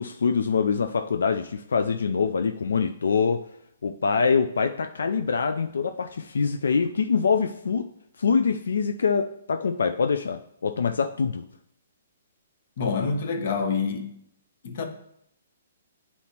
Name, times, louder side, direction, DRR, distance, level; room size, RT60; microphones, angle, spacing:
voice 1, 0.0-3.5 3.8-7.9 8.2-11.4, left 5 dB, 90° left, 8 dB, 0.3 m, -24 dB
voice 2, 12.8-14.1 14.6-14.8, left 5 dB, 50° left, 6 dB, 0.9 m, -27 dB
9.2 x 4.1 x 2.9 m, 0.74 s
hypercardioid pair, 165°, 0 cm